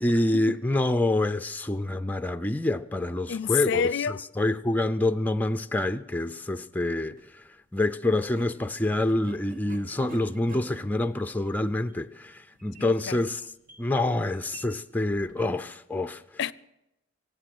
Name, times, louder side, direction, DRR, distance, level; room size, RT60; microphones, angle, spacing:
voice 1, 0.0-3.8 4.4-7.1 7.7-13.4 13.8-16.2, left 2 dB, 10° left, 0.4 m, -26 dB
voice 2, 3.3-4.2 12.8-13.3 16.4-16.5, left 7 dB, 65° left, 0.4 m, -28 dB
sound 1, 7.0-7.3 8.1-15.6, right 2 dB, 45° right, 1.4 m, -50 dB
24.0 x 8.3 x 6.2 m
head